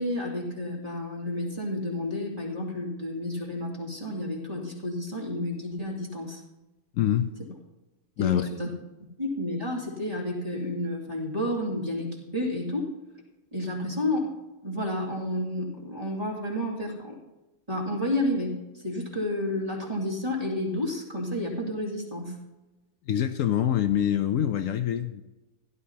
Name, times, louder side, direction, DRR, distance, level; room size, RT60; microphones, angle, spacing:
voice 1, 0.0-6.4 8.2-8.7 9.2-12.9 13.5-14.3 14.6-17.2 17.7-22.4, left 1 dB, 25° right, -3 dB, 2.6 m, -31 dB
voice 2, 6.9-7.3 8.2-8.5 23.1-25.2, left 10 dB, 65° left, 9 dB, 0.9 m, -25 dB
16.5 x 11.0 x 2.8 m, 1.1 s
omnidirectional pair, 1.6 m